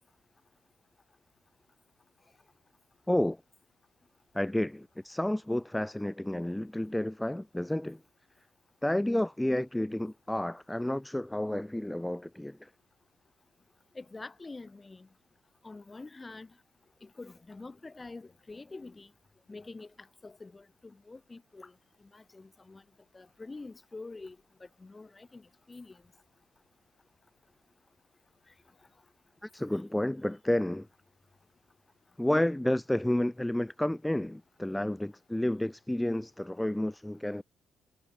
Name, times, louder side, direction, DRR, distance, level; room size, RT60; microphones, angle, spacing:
voice 1, 3.1-3.4 4.3-8.0 8.8-12.7 29.4-30.9 32.2-37.4, left 1 dB, 5° left, 0.4 m, -30 dB
voice 2, 14.0-15.1 15.6-16.5 17.0-19.1 19.5-19.9 20.2-21.7 22.1-22.8 23.1-26.0, left 3 dB, 20° left, 1.8 m, -46 dB
cardioid pair, 90°, 0 cm